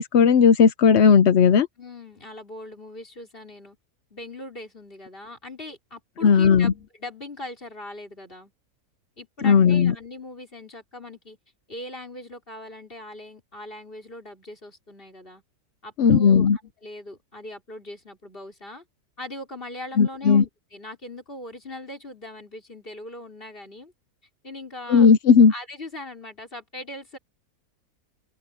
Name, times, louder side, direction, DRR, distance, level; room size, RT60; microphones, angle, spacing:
voice 1, 0.0-1.7 6.2-6.7 9.4-9.9 16.0-16.6 20.0-20.4 24.9-25.5, left 6 dB, 55° left, 0.9 m, -16 dB
voice 2, 1.8-3.8 4.1-8.5 9.2-11.4 11.7-15.4 15.8-18.8 19.2-23.9 24.4-25.1 25.5-27.2, left 1 dB, 35° left, 5.4 m, -40 dB
open air
omnidirectional pair, 1.7 m